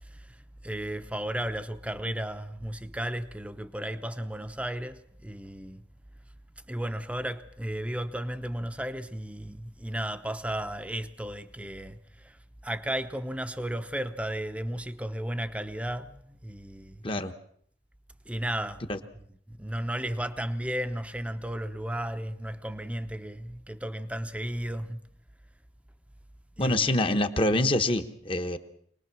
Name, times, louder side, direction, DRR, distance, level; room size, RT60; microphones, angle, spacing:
voice 1, 0.0-5.8 6.7-17.0 18.3-25.1 26.6-27.0, right 1 dB, 5° right, 0.8 m, -34 dB
voice 2, 26.6-28.6, left 2 dB, 30° left, 1.1 m, -25 dB
24.5 x 20.0 x 6.1 m
head